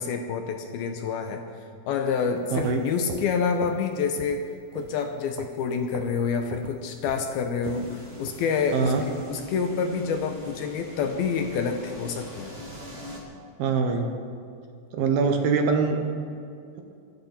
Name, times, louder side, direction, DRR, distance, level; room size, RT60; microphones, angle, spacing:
voice 1, 0.0-1.4 1.9-4.4 4.7-8.9 9.3-12.5, left 6 dB, 75° left, 5 dB, 2.5 m, -27 dB
sound 1, 2.4-3.9 4.2-4.5 4.8-5.6 5.9-6.2 6.5-9.2, right 10 dB, 90° right, 2.9 m, -40 dB
voice 2, 2.5-2.9 8.7-9.0 13.6-14.1 14.9-16.0, right 5 dB, 70° right, 4 dB, 2.8 m, -23 dB
sound 2, 7.6-13.2, equal, 20° right, 1.8 m, -42 dB
24.5 x 12.0 x 4.4 m, 2.5 s
omnidirectional pair, 4.9 m